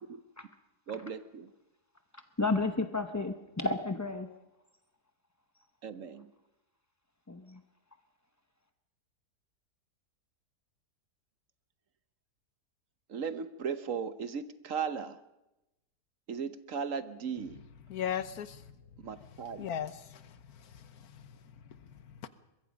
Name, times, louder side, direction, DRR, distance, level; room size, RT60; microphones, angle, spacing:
voice 1, 0.9-1.5 5.8-6.3 13.1-15.2 16.3-17.6 19.0-19.6, right 6 dB, 55° right, 1.2 m, -37 dB
voice 2, 2.4-4.3 7.3-7.6, left 3 dB, 25° left, 0.4 m, -32 dB
voice 3, 17.9-18.6 19.2-21.2 22.1-22.3, left 9 dB, 70° left, 1.4 m, -38 dB
23.0 x 21.5 x 5.2 m
omnidirectional pair, 1.7 m